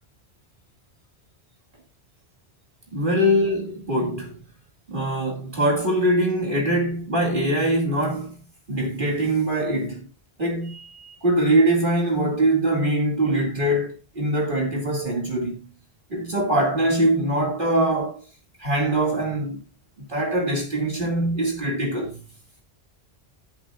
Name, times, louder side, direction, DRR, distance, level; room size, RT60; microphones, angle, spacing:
voice 1, 2.9-4.4 4.9-8.4 8.7-10.1 10.4-15.6 16.1-18.3 18.6-19.6 20.0-22.2, right 1 dB, 50° right, 2.4 m, -23 dB
16.0 x 7.9 x 2.4 m
omnidirectional pair, 1.1 m